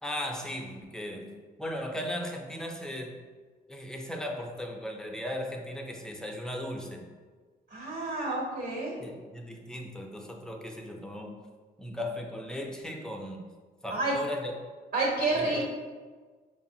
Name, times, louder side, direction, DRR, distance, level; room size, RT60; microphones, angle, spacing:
voice 1, 0.0-1.3 1.6-3.2 3.7-7.1 9.0-11.4 11.8-13.4 13.8-14.5 15.4-15.6, left 1 dB, 5° left, 1 dB, 0.4 m, -37 dB
voice 2, 7.7-9.0 13.9-14.1 14.9-15.6, right 2 dB, 85° right, -4 dB, 1.0 m, -29 dB
5.0 x 2.0 x 2.7 m, 1.4 s
cardioid pair, 90°, 17 cm